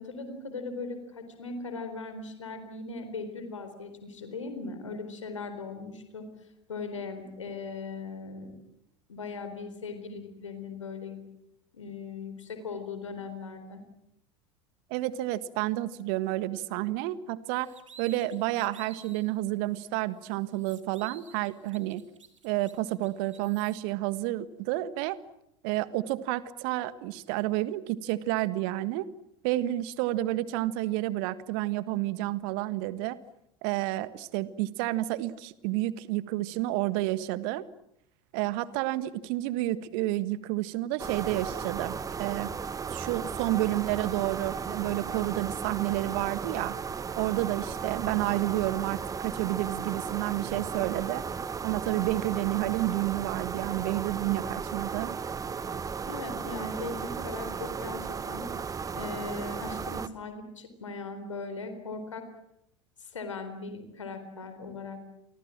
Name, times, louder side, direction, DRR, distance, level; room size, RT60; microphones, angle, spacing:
voice 1, 0.0-6.3 6.7-8.6 9.1-11.2 11.7-13.8 56.1-58.5 59.0-62.3 63.0-65.0, left 4 dB, 80° left, 8 dB, 4.2 m, -39 dB
voice 2, 14.9-17.7 18.0-22.0 22.4-25.2 25.6-29.1 29.4-33.2 33.6-37.6 38.3-42.5 42.9-46.7 47.2-51.2 51.6-55.2, right 16 dB, 55° right, 15 dB, 1.6 m, -30 dB
sound 1, 17.5-19.3 19.7-19.8 20.2-23.8, right 7 dB, 80° right, 2.7 m, -53 dB
sound 2, 41.0-60.1, right 6 dB, 20° right, 1.5 m, -35 dB
29.0 x 25.0 x 7.6 m, 0.79 s
figure-of-eight pair, 80°, 16 cm